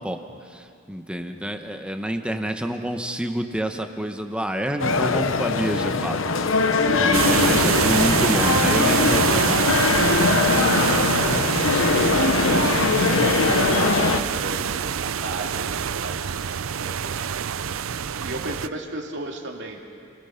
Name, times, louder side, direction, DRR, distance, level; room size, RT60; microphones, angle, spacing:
voice 1, 0.0-6.2 7.0-10.1, equal, 5° right, 5 dB, 1.2 m, -28 dB
sound 1, 4.8-14.2, left 4 dB, 70° left, 0.9 m, -21 dB
sound 2, 7.1-18.7, right 7 dB, 80° right, 0.5 m, -25 dB
voice 2, 11.1-11.6 12.1-16.3 16.8-17.4 18.1-19.8, right 2 dB, 60° right, 1 dB, 2.5 m, -34 dB
28.5 x 20.5 x 5.9 m, 2.4 s
head